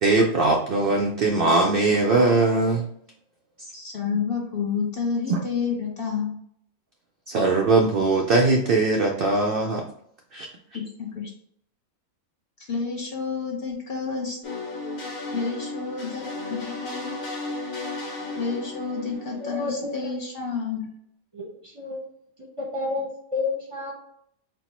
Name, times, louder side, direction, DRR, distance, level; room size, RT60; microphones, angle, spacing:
voice 1, 0.0-2.9 5.3-5.4 7.3-9.8 10.3-10.5, right 3 dB, 80° right, 1 dB, 0.5 m, -20 dB
voice 2, 3.7-6.4 10.7-11.3 12.7-14.4 15.3-17.1 18.3-20.9, left 5 dB, 50° left, -1 dB, 0.7 m, -30 dB
sound 1, 14.4-20.2, left 3 dB, 70° left, 1.4 m, -34 dB
voice 3, 19.4-20.1 21.3-22.1 22.4-23.9, left 3 dB, 30° right, -2 dB, 0.6 m, -31 dB
4.4 x 2.0 x 4.2 m, 0.67 s
omnidirectional pair, 1.5 m